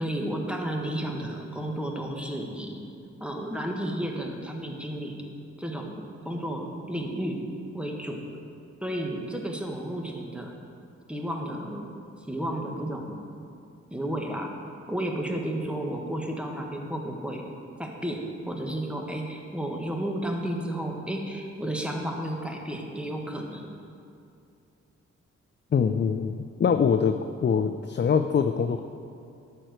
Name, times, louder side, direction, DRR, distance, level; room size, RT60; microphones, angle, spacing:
voice 1, 0.0-2.8 3.2-5.2 5.6-7.4 7.7-8.2 8.8-10.5 11.1-11.9 12.3-13.2 13.9-14.5 14.9-17.4 17.8-23.7, right 1 dB, 5° right, 1 dB, 1.4 m, -32 dB
voice 2, 25.7-27.1 27.4-28.8, left 6 dB, 40° left, 8 dB, 0.4 m, -23 dB
11.5 x 4.5 x 7.9 m, 2.5 s
cardioid pair, 70°, 29 cm